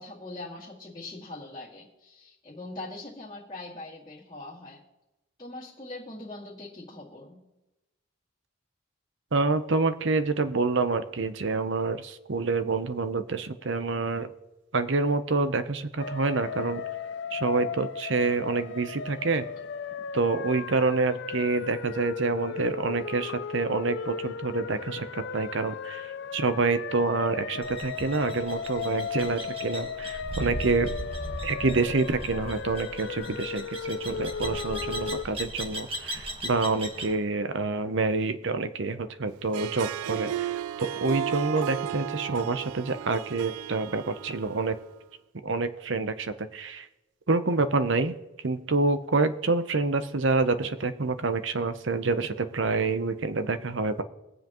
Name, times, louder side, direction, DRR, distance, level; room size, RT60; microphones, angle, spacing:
voice 1, 0.0-4.8 5.4-7.4, left 2 dB, 20° left, -11 dB, 2.2 m, -42 dB
voice 2, 9.3-14.3 14.7-16.8 17.3-19.4 20.1-26.1 26.3-30.9 31.4-40.6 41.0-44.8 45.4-46.9 47.3-48.1 48.4-54.0, right 3 dB, 60° right, 11 dB, 0.7 m, -27 dB
sound 1, 16.0-35.2, left 6 dB, 55° left, 0.3 m, -36 dB
sound 2, 27.6-37.1, right 1 dB, 25° right, 1.3 m, -38 dB
Harp, 39.4-44.8, right 10 dB, 90° right, 0.3 m, -34 dB
21.5 x 7.6 x 3.0 m, 1.0 s
head